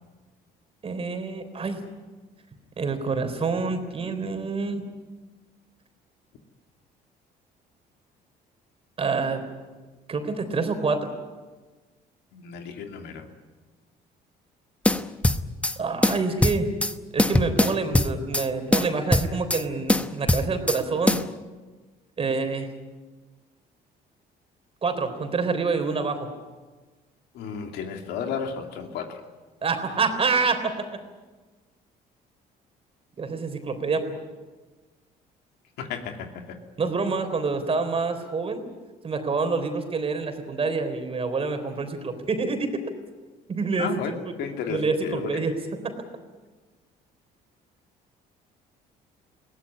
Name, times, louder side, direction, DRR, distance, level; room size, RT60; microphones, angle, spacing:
voice 1, 0.8-1.8 2.8-4.9 9.0-9.4 10.1-11.1 15.8-16.7 17.1-21.2 22.2-22.7 24.8-26.3 29.6-31.0 33.2-34.2 36.8-38.6 39.0-42.8 43.5-43.9 44.7-45.5 45.8-45.9, right 4 dB, 35° right, 7 dB, 3.6 m, -27 dB
voice 2, 12.3-13.3 27.3-29.2 35.8-36.6 43.8-44.1 44.4-45.4, left 6 dB, 80° left, 4 dB, 2.8 m, -33 dB
sound 1, 14.9-15.8 16.0-16.9 17.2-18.5 18.7-19.6 19.9-20.8 21.1-21.3, left 1 dB, 5° left, 0.9 m, -22 dB
21.5 x 17.5 x 9.9 m, 1.3 s
cardioid pair, 110°, 17 cm